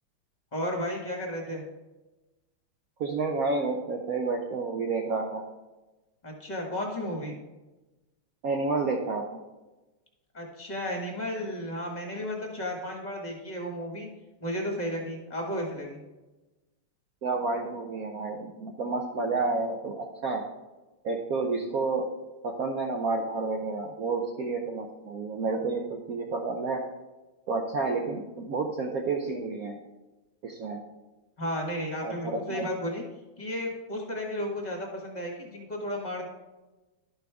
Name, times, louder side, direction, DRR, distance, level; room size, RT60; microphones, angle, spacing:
voice 1, 0.5-1.6 6.2-7.4 10.3-14.1 14.4-16.0 31.4-33.0 33.4-36.3, equal, 25° left, 0 dB, 1.3 m, -33 dB
voice 2, 3.0-5.4 8.4-9.2 17.2-20.4 21.0-22.1 22.4-26.8 27.5-29.8 30.4-30.8 32.0-32.6, right 3 dB, 85° right, 2 dB, 0.7 m, -30 dB
12.0 x 5.6 x 3.4 m, 1.1 s
omnidirectional pair, 2.4 m